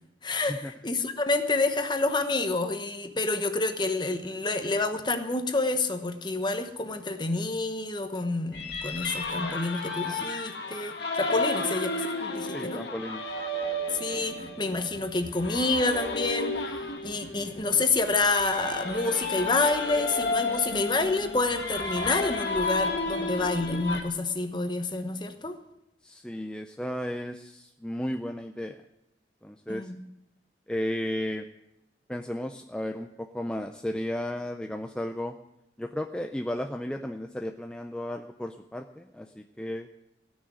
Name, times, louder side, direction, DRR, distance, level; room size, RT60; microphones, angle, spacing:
voice 1, 0.2-11.9 12.2-12.8 13.9-16.6 17.0-25.6 29.7-30.0, left 3 dB, 25° left, 8 dB, 1.0 m, -28 dB
sound 1, 8.5-24.0, left 2 dB, 70° left, 2.0 m, -32 dB
voice 2, 12.5-13.2 26.0-28.8 29.4-29.9 30.7-31.5 32.1-35.4 35.8-39.9, left 1 dB, 5° left, 5 dB, 0.5 m, -34 dB
16.5 x 6.4 x 9.6 m, 0.86 s
head